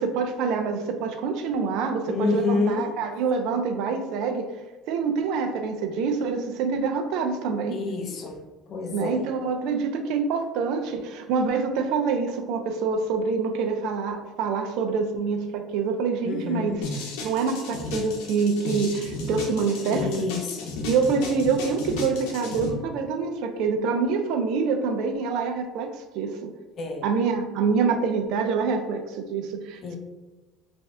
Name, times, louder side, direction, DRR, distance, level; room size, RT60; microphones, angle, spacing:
voice 1, 0.0-4.5 4.9-7.8 8.9-16.8 17.2-20.3 20.8-26.5 27.0-30.0, right 5 dB, 70° right, 6 dB, 0.4 m, -26 dB
voice 2, 2.1-2.9 7.7-8.4 8.7-9.3 16.2-16.8 19.9-20.7 22.4-22.8 26.8-27.1 29.8-30.0, left 4 dB, 45° left, 3 dB, 0.6 m, -29 dB
sound 1, 16.8-22.7, left 3 dB, 90° left, 0.7 m, -34 dB
3.1 x 2.6 x 3.6 m, 1.2 s
cardioid pair, 125°, 0 cm